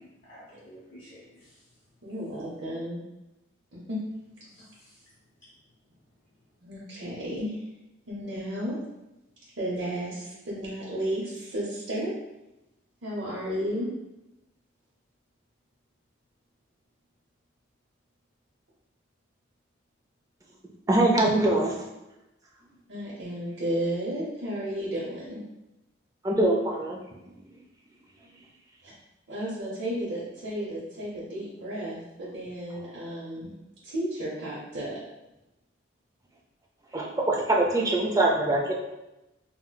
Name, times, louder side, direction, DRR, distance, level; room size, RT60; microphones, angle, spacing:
voice 1, 0.0-1.6 4.5-5.0, equal, 40° left, -8 dB, 0.8 m, -51 dB
voice 2, 2.0-3.0 3.7-4.0 6.6-7.6 8.1-8.8 9.6-12.1 13.0-13.9 22.9-25.4 28.8-28.9 29.3-33.5 33.8-35.0, equal, 65° right, -8 dB, 0.7 m, -33 dB
voice 3, 20.9-21.8 26.2-27.0 36.9-38.7, right 2 dB, 15° right, -1 dB, 0.4 m, -23 dB
3.9 x 2.1 x 2.2 m, 0.96 s
head